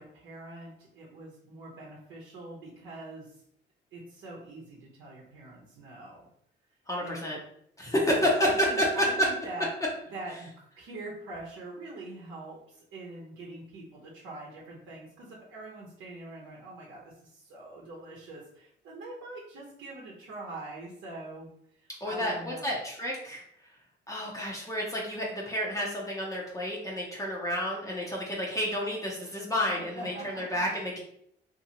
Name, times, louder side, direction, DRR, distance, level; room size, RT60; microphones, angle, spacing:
voice 1, 0.0-3.3 3.9-6.3 7.0-7.4 7.9-9.7 10.1-21.5 21.8-22.7 29.7-30.6, right 2 dB, 80° right, -4 dB, 0.8 m, -43 dB
voice 2, 6.9-7.4 7.8-8.9 22.0-23.4 24.1-31.0, equal, 15° left, -4 dB, 0.6 m, -30 dB
2.7 x 2.6 x 2.8 m, 0.72 s
cardioid pair, 90°, 20 cm